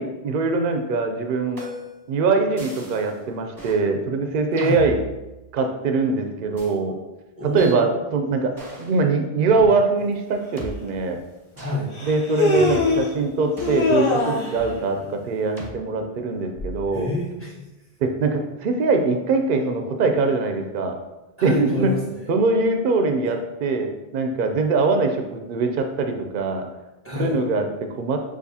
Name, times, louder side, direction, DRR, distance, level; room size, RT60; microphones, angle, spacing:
voice 1, 0.0-1.6 2.1-5.0 5.5-6.9 7.4-8.5 8.8-11.2 12.1-17.1 18.0-21.0 21.4-21.9 22.3-26.6 27.2-28.2, right 3 dB, 60° right, 5 dB, 0.7 m, -22 dB
sound 1, 1.6-2.0 2.6-3.1 3.6-3.8 4.6-5.7 6.6-6.7 7.6-7.7 8.6-9.0 9.6-9.7 10.6-10.7 11.6-11.8 12.6-13.1 13.6-14.8 15.6-15.8 16.6-16.9, right 2 dB, 20° right, 0.9 m, -37 dB
voice 2, 4.5-4.8 7.4-7.9 11.5-11.9 16.9-17.7 21.4-22.3 27.0-27.4, left 2 dB, 15° left, -7 dB, 1.2 m, -28 dB
Human voice, 10.6-10.7 11.9-13.1 13.6-14.6, left 3 dB, 35° left, 0.6 m, -22 dB
6.6 x 2.5 x 2.7 m, 1.0 s
omnidirectional pair, 1.0 m